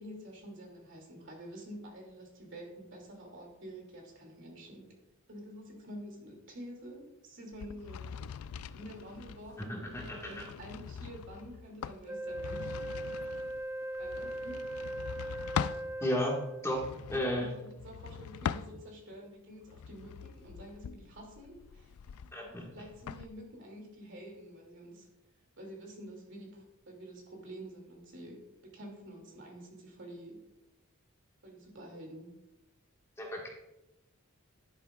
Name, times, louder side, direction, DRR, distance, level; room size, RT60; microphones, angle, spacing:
voice 1, 0.0-4.9 5.3-8.1 8.7-12.7 14.0-14.6 17.1-21.9 22.4-25.1 25.6-30.4 31.4-32.3, equal, 60° right, 0 dB, 2.5 m, -48 dB
sound 1, 7.5-15.9 16.7-19.1 19.6-23.3, left 7 dB, 80° left, 0.3 m, -42 dB
voice 2, 9.6-10.4 16.0-16.3 16.6-16.8 17.1-17.5 22.3-22.6 33.2-33.5, left 1 dB, 15° left, -2 dB, 1.6 m, -33 dB
Wind instrument woodwind instrument, 12.1-16.8, right 1 dB, 10° right, 0.3 m, -39 dB
11.0 x 9.9 x 2.4 m, 0.92 s
head